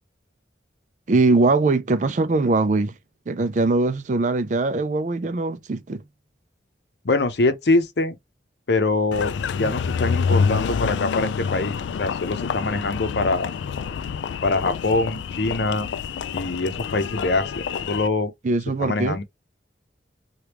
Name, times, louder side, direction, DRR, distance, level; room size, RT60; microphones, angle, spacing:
voice 1, 1.1-2.9 3.3-6.0 18.4-19.2, right 3 dB, 45° right, 0.4 m, -21 dB
voice 2, 7.0-8.1 8.7-9.3 9.6-13.5 14.4-15.9 16.3-18.3 18.8-19.2, left 2 dB, 70° left, 0.7 m, -23 dB
Engine, 9.1-18.1, left 6 dB, 85° left, 0.3 m, -27 dB
3.4 x 2.4 x 2.9 m
head